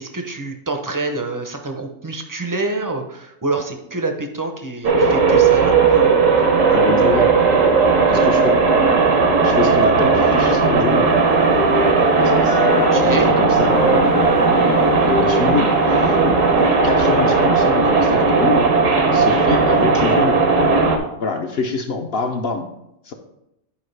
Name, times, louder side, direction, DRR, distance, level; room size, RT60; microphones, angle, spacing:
voice 1, 0.0-6.2 12.9-13.3, right 2 dB, 25° right, 4 dB, 0.5 m, -26 dB
sound 1, 4.8-21.0, right 4 dB, 80° right, 1.4 m, -16 dB
voice 2, 6.7-7.3 8.1-8.6 9.4-11.1 12.2-14.3 15.1-16.1 16.6-18.7 19.1-20.4 21.2-22.7 23.0-23.1, left 4 dB, 55° left, 4 dB, 0.8 m, -25 dB
Wind instrument woodwind instrument, 10.2-13.2 13.7-17.5, left 3 dB, 75° left, 1.1 m, -27 dB
9.9 x 4.7 x 3.3 m, 0.84 s
omnidirectional pair, 1.3 m